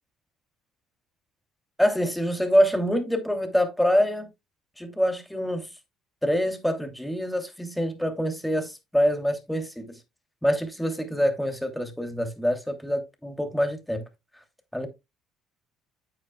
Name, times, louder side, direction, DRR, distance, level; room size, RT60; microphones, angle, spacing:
voice 1, 1.8-4.3 4.8-5.7 6.2-10.0 10.4-14.0 14.7-14.9, equal, 5° left, 2.6 m, -25 dB
9.0 x 9.0 x 2.3 m
hypercardioid pair, 60°, 0 cm